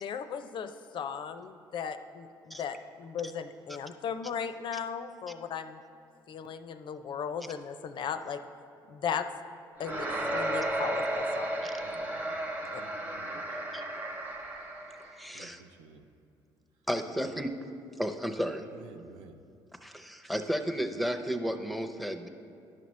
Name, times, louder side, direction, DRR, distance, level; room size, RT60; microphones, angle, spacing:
voice 1, 0.0-5.8 6.3-8.4 8.9-9.3 9.8-11.7 12.7-12.8, left 7 dB, 55° left, 10 dB, 0.4 m, -37 dB
sound 1, 9.8-15.2, right 1 dB, 15° right, 0.9 m, -34 dB
voice 2, 11.8-13.6 15.3-16.1 17.0-17.4 18.7-19.4, right 5 dB, 85° right, 6 dB, 0.5 m, -53 dB
voice 3, 15.1-15.6 16.9-17.5 18.0-18.7 19.8-22.3, equal, ahead, 7 dB, 0.6 m, -33 dB
10.5 x 5.8 x 3.1 m, 2.5 s
supercardioid pair, 75°, 10 cm